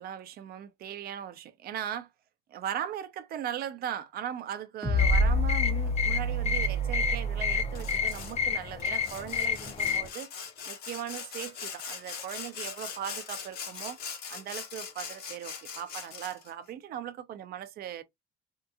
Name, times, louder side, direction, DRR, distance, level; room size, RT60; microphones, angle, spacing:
voice 1, 0.0-2.1 2.5-10.3 10.7-18.0, right 10 dB, 65° right, 0.6 m, -38 dB
sound 1, 4.8-8.2, equal, 15° right, 0.9 m, -28 dB
sound 2, 5.0-10.1, left 7 dB, 40° left, 0.6 m, -31 dB
Sawing, 7.7-8.4 8.8-16.5, left 6 dB, 70° left, 1.2 m, -41 dB
3.6 x 2.8 x 2.4 m
cardioid pair, 110°, 17 cm